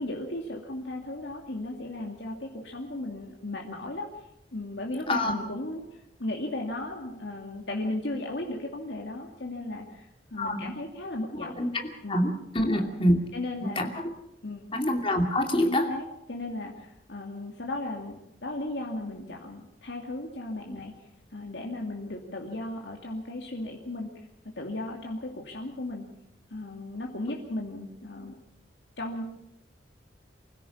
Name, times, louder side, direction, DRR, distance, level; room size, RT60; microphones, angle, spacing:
voice 1, 0.0-4.1 4.5-11.5 12.0-12.2 12.6-12.8 13.3-13.9 14.4-14.6 15.6-20.9 21.3-24.1 24.6-26.1 26.5-28.4 29.0-29.4, left 2 dB, 70° left, 0 dB, 2.5 m, -36 dB
voice 2, 12.1-13.2 13.6-14.0 14.7-15.9, left 1 dB, 30° left, 3 dB, 2.6 m, -25 dB
24.5 x 16.0 x 7.2 m, 0.79 s
head